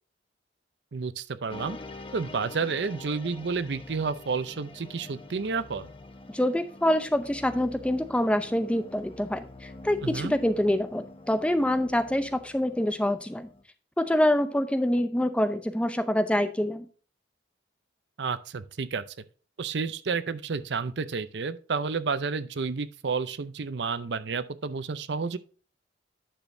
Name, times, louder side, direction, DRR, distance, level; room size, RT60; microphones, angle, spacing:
voice 1, 0.9-1.8 2.1-5.9 10.0-10.3 18.2-19.0 19.6-25.4, right 5 dB, 70° right, 0.6 m, -30 dB
sound 1, 1.5-13.6, left 2 dB, 30° left, 0.9 m, -46 dB
voice 2, 6.3-13.5 14.0-16.9, left 1 dB, 5° left, 0.5 m, -26 dB
10.0 x 6.2 x 2.6 m
head